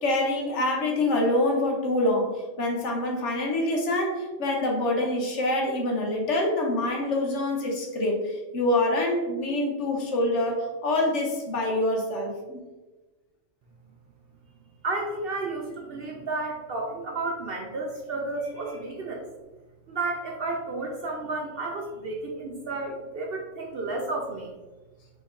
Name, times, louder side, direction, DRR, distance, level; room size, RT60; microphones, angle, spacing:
voice 1, 0.0-2.3 2.6-12.6, left 1 dB, 65° left, 0 dB, 1.1 m, -26 dB
voice 2, 14.8-19.2 19.9-24.5, right 2 dB, 60° right, 0 dB, 0.7 m, -32 dB
4.2 x 3.1 x 3.5 m, 1.2 s
omnidirectional pair, 1.4 m